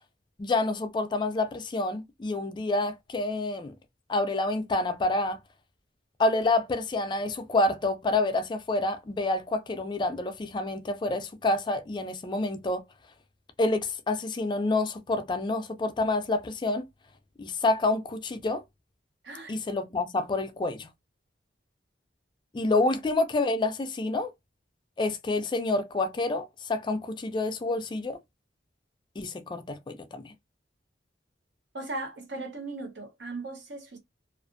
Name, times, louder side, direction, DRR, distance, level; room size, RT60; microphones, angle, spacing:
voice 1, 0.4-3.7 4.1-5.4 6.2-12.8 13.6-16.9 17.4-18.6 19.5-20.9 22.5-24.3 25.0-28.2 29.2-30.3, left 2 dB, 25° left, 0.3 m, -28 dB
voice 2, 19.2-19.6 22.8-23.0 31.7-34.0, right 2 dB, 70° right, 0.9 m, -38 dB
2.5 x 2.4 x 2.5 m
head